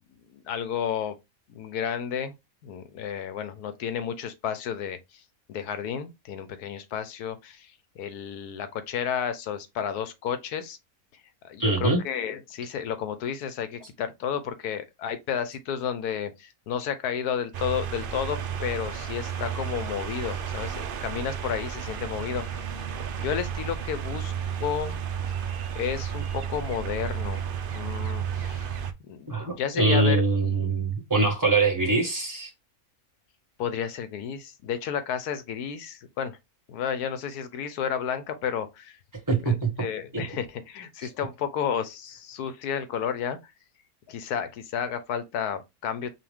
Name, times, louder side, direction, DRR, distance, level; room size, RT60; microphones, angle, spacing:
voice 1, 0.3-1.2 1.5-2.4 2.6-5.2 5.5-10.8 11.4-22.8 23.2-24.3 24.6-25.0 25.7-27.5 27.7-28.8 29.1-30.2 33.6-36.4 36.7-39.0 39.4-43.5 44.1-46.1, left 8 dB, 85° left, 1.3 m, -32 dB
voice 2, 11.6-12.0 29.3-32.5 39.3-39.7 40.1-40.2, right 3 dB, 15° right, 1.4 m, -23 dB
sound 1, 17.5-28.9, right 8 dB, 70° right, 0.5 m, -32 dB
5.5 x 2.4 x 3.5 m
omnidirectional pair, 1.6 m